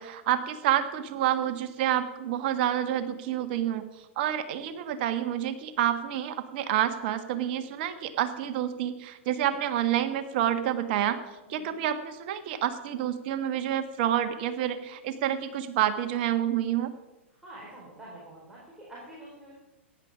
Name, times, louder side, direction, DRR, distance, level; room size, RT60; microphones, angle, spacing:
voice 1, 0.0-3.8 4.2-11.2 11.5-16.9, right 11 dB, 50° right, 9 dB, 1.4 m, -28 dB
voice 2, 11.5-11.8 17.3-19.5, right 1 dB, 10° right, -6 dB, 4.6 m, -47 dB
15.5 x 10.5 x 5.0 m, 1.1 s
figure-of-eight pair, 110°, 7 cm